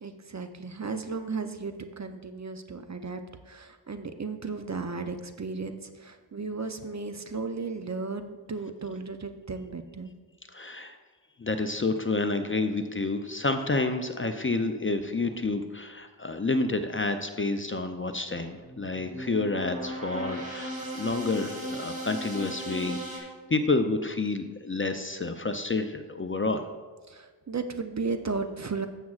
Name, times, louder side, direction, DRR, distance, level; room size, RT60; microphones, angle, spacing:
voice 1, 0.0-10.1 27.1-28.9, right 4 dB, 40° right, 8 dB, 0.6 m, -35 dB
voice 2, 10.5-11.0 11.4-26.6, left 3 dB, 30° left, 7 dB, 0.5 m, -29 dB
sound 1, 18.4-23.2, equal, 15° right, 2.2 m, -37 dB
12.5 x 7.2 x 2.4 m, 1.4 s
wide cardioid pair, 65°, 46 cm